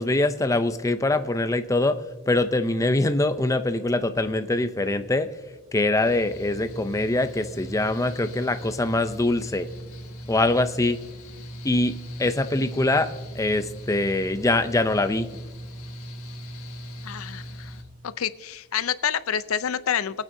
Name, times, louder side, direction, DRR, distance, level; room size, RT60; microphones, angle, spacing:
voice 1, 0.0-2.0 2.3-5.3 5.7-9.7 10.3-11.0 11.6-15.3, left 2 dB, 15° left, 9 dB, 0.5 m, -23 dB
Mechanical fan, 5.9-17.8, equal, 90° left, 1.8 m, -39 dB
voice 2, 17.0-17.8 18.2-20.2, left 8 dB, 70° left, 14 dB, 0.5 m, -28 dB
25.5 x 8.9 x 2.7 m, 1.3 s
head